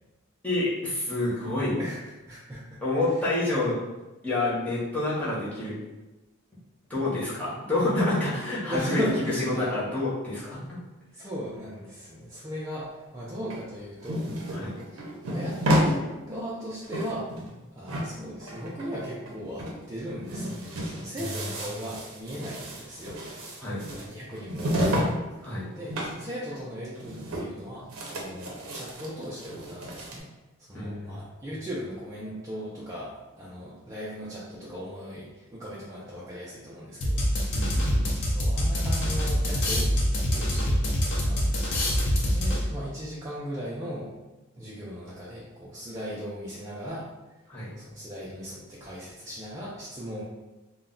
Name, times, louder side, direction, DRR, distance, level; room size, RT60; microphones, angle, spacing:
voice 1, 0.4-1.8 2.8-3.8 4.2-5.8 6.9-9.0 9.4-10.8 14.5-14.7 21.1-21.2 23.6-23.9 25.4-25.7 30.7-31.3 37.5-38.1 47.5-47.7, left 2 dB, 5° left, -9 dB, 0.8 m, -28 dB
voice 2, 2.3-2.8 8.6-9.7 11.1-14.5 14.9-15.0 15.3-17.3 17.7-23.3 23.9-25.1 25.7-30.2 30.6-37.2 38.2-39.9 40.3-44.1 44.6-47.1 47.7-50.2, equal, 15° right, -8 dB, 0.4 m, -37 dB
sound 1, 13.5-15.9 16.3-16.4 16.7-17.6 17.9-19.3 19.6-19.8 20.1-25.1 25.4-26.2 26.5-26.6 26.9-27.6 27.9-30.2, equal, 70° right, 0.6 m, -31 dB
sound 2, 37.0-42.9, equal, 60° left, 0.6 m, -25 dB
2.3 x 2.1 x 3.7 m, 1.1 s
head